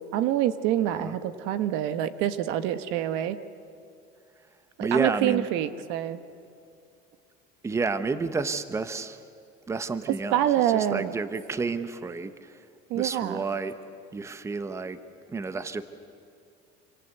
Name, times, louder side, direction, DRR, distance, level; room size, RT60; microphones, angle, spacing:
voice 1, 0.1-3.4 4.8-6.2 10.3-11.1 12.9-13.4, right 12 dB, 75° right, 12 dB, 1.4 m, -26 dB
voice 2, 0.8-1.2 4.8-5.5 7.6-9.2 9.7-12.6 12.9-13.8 14.1-15.0 15.3-15.8, right 4 dB, 15° right, 11 dB, 1.0 m, -30 dB
27.0 x 25.5 x 8.3 m, 2.5 s
cardioid pair, 145°, 19 cm